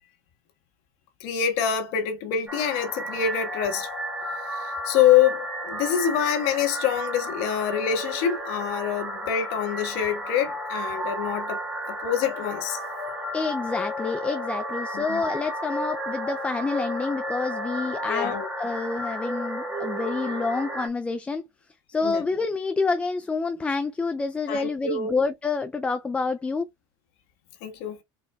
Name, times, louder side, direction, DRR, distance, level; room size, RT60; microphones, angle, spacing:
voice 1, 1.2-3.9 4.5-11.6 11.9-12.8 14.9-15.2 18.1-18.5 22.0-22.2 24.5-25.1 27.6-28.0, left 9 dB, 60° left, 1.5 m, -25 dB
sound 1, 2.5-20.9, equal, 5° right, 2.2 m, -33 dB
voice 2, 13.3-21.4 21.9-26.7, left 4 dB, 10° left, 0.3 m, -28 dB
4.5 x 4.1 x 2.3 m
cardioid pair, 155°, 13 cm